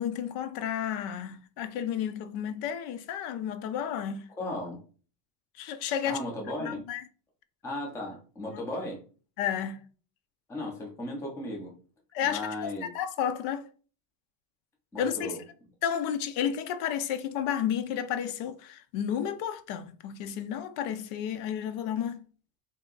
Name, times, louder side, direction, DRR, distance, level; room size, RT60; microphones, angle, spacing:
voice 1, 0.0-4.3 5.6-6.2 6.6-7.0 8.4-8.6 9.4-9.8 12.1-13.7 15.0-15.3 15.8-22.2, left 9 dB, 80° left, 0.7 m, -32 dB
voice 2, 4.4-4.8 6.0-6.8 7.6-9.0 10.5-11.8 12.2-12.9 14.9-15.4, left 1 dB, 5° left, 0.4 m, -36 dB
3.3 x 2.8 x 3.8 m
cardioid pair, 170°, 50 cm